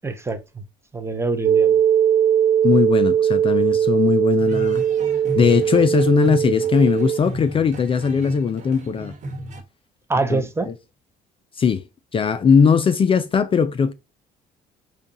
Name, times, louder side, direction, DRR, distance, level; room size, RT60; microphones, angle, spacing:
voice 1, 0.0-0.6 0.9-1.8 10.1-10.7, right 3 dB, 15° right, 0.6 m, -25 dB
sound 1, 1.4-7.2, right 9 dB, 85° right, 0.5 m, -19 dB
voice 2, 2.6-4.8 5.3-9.1 10.3-10.4 10.7-10.8 11.6-11.8 12.1-13.9, left 6 dB, 30° left, 0.4 m, -19 dB
sound 2, 4.4-9.6, right 1 dB, 45° right, 1.2 m, -34 dB
5.1 x 2.3 x 2.6 m
cardioid pair, 110°, 17 cm